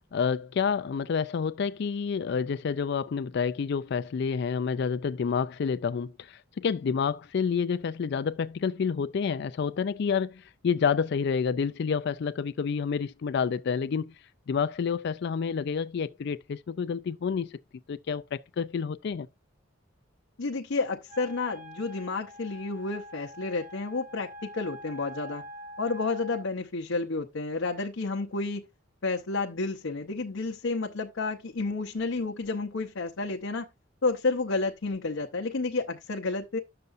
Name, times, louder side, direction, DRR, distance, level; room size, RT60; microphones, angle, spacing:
voice 1, 0.0-14.1 14.5-17.6 17.9-19.3, left 6 dB, 60° left, 0.4 m, -29 dB
voice 2, 20.4-25.4 25.8-28.6 29.0-33.7 34.0-36.6, left 3 dB, 90° left, 0.8 m, -30 dB
Wind instrument woodwind instrument, 21.1-26.5, equal, 45° right, 3.3 m, -45 dB
10.5 x 6.7 x 2.5 m
head